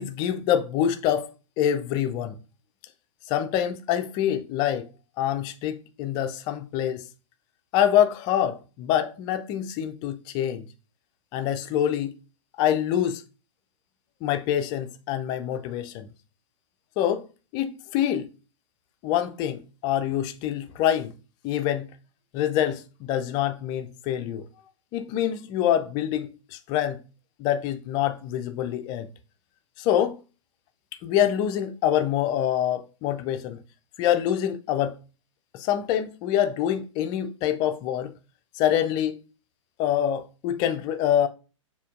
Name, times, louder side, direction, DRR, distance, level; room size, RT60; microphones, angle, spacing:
voice 1, 0.0-2.4 3.3-4.9 5.2-7.0 7.7-10.7 11.3-12.2 12.6-13.2 14.2-16.1 17.0-17.2 17.5-18.3 19.0-21.1 21.4-21.9 22.3-24.4 24.9-27.0 27.4-29.1 29.8-30.2 31.0-33.6 34.0-35.0 35.5-38.2 38.6-39.2 39.8-41.3, left 10 dB, 25° left, 0.4 m, -25 dB
6.6 x 2.8 x 2.5 m
figure-of-eight pair, 110°, 16 cm